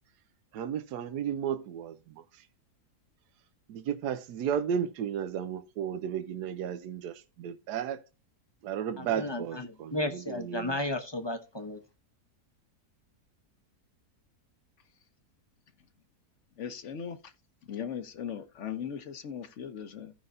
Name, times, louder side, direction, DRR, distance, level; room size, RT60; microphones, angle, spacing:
voice 1, 0.5-2.2 3.7-8.0 8.6-10.0 10.3-10.8, right 8 dB, 90° right, 1.2 m, -33 dB
voice 2, 9.0-11.8, left 1 dB, 30° left, 0.5 m, -34 dB
voice 3, 16.6-17.2 17.7-20.1, left 8 dB, 55° left, 1.0 m, -38 dB
15.5 x 5.4 x 2.5 m
omnidirectional pair, 1.7 m